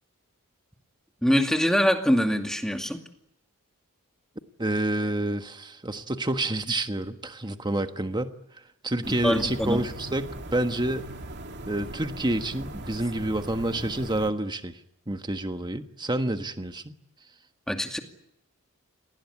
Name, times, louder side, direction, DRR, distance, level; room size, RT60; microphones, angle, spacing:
voice 1, 1.2-3.0 9.2-9.8 17.7-18.0, equal, 5° left, 4 dB, 2.4 m, -24 dB
voice 2, 4.6-8.4 8.8-11.1 11.7-14.8 15.1-16.9, right 1 dB, 20° right, 8 dB, 1.4 m, -28 dB
sound 1, 9.0-14.3, right 1 dB, 50° right, 2.6 m, -40 dB
28.0 x 19.5 x 9.7 m, 0.77 s
head